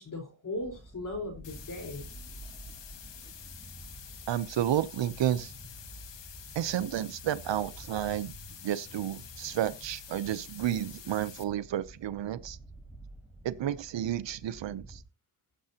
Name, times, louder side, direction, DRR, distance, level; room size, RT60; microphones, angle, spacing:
voice 1, 0.0-2.1, left 2 dB, 45° left, 4.5 m, -38 dB
sound 1, 0.6-15.0, right 2 dB, 5° right, 3.7 m, -50 dB
sound 2, 1.4-11.4, left 9 dB, 70° left, 1.4 m, -48 dB
voice 2, 4.3-5.5 6.5-8.3 8.6-12.6 13.4-15.0, right 11 dB, 75° right, 0.8 m, -31 dB
15.5 x 7.6 x 2.9 m
cardioid pair, 90°, 45 cm